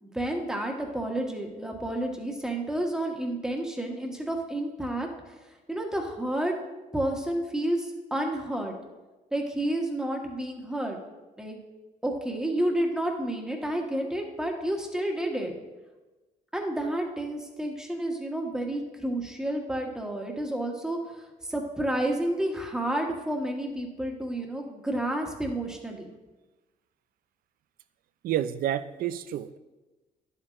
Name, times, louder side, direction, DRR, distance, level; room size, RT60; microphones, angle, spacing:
voice 1, 0.0-5.1 5.7-6.5 6.9-8.7 9.3-11.0 11.4-11.6 12.0-15.5 16.5-21.0 21.5-26.1, right 1 dB, 5° right, 1 dB, 1.4 m, -30 dB
voice 2, 28.2-29.6, right 11 dB, 70° right, 14 dB, 0.4 m, -29 dB
11.0 x 8.0 x 2.5 m, 1.2 s
cardioid pair, 85°, 15 cm